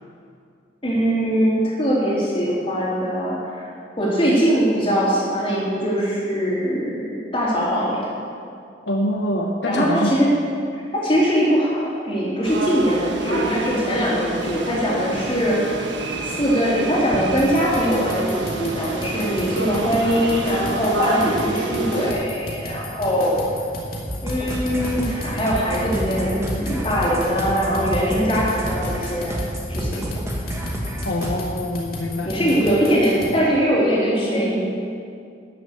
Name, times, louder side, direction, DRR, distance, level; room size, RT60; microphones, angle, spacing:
voice 1, 0.8-3.7 4.0-8.2 9.6-10.3 10.7-15.8 16.2-23.4 24.2-29.4 29.7-30.1 32.2-34.6, equal, 30° left, -6 dB, 3.5 m, -21 dB
voice 2, 8.9-10.1 31.0-32.6, left 1 dB, 75° left, 2 dB, 1.0 m, -25 dB
sound 1, 12.4-22.1, right 2 dB, 75° right, 1.4 m, -29 dB
sound 2, 17.4-33.4, left 1 dB, 50° left, 2.4 m, -34 dB
sound 3, 24.1-31.3, equal, 15° right, 1.6 m, -29 dB
13.0 x 7.2 x 8.4 m, 2.4 s
head